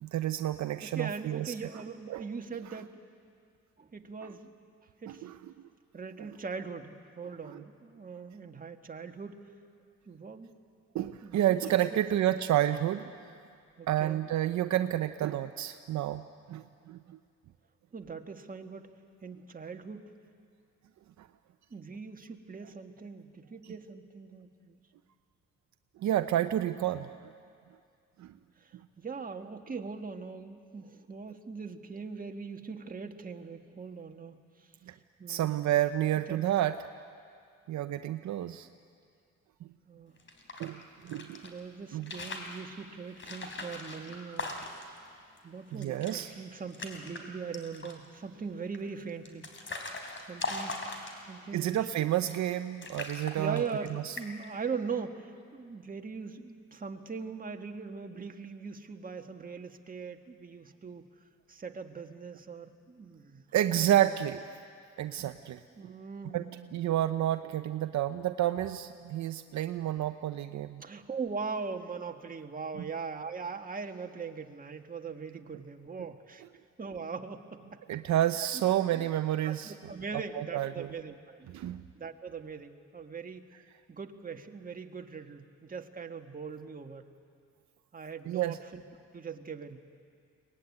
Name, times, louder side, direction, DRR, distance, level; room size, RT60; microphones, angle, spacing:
voice 1, 0.0-1.5 2.1-2.2 5.2-5.3 7.5-7.6 10.9-13.1 13.9-17.2 21.2-21.3 26.0-27.1 28.2-28.3 34.9-35.0 35.3-36.7 37.7-38.7 40.6-41.4 41.9-42.1 45.8-46.3 51.5-53.6 53.9-54.1 63.5-64.4 65.0-65.6 66.3-66.4 66.7-70.8 72.8-72.9 77.9-79.7 80.3-80.9 81.5-81.8 88.3-88.6, right 12 dB, 70° right, 10 dB, 0.7 m, -30 dB
voice 2, 0.8-3.0 3.8-4.5 5.0-5.3 5.9-9.4 10.0-10.5 11.2-11.6 11.9-12.0 13.8-14.2 17.9-18.9 19.2-20.1 21.7-24.8 28.6-34.7 35.2-35.6 36.3-36.4 39.9-40.2 41.4-44.6 45.4-50.0 50.3-50.8 51.3-51.9 53.4-61.0 61.5-63.4 63.7-64.2 65.8-66.8 70.8-76.4 76.8-77.8 78.4-78.6 78.9-79.1 79.4-81.5 81.9-83.4 83.9-87.0 87.9-88.8 89.1-89.8, right 5 dB, 30° right, 5 dB, 1.7 m, -41 dB
sound 1, 40.2-41.5 41.9-42.6 43.2-45.0 45.4-45.5 45.7-46.2 46.5-47.2 47.5-48.1 48.7-51.4 52.1-52.5 52.8-53.9 54.2-54.5, left 3 dB, 40° left, 3.7 m, -40 dB
23.5 x 19.5 x 9.7 m, 2.3 s
cardioid pair, 90°, 30 cm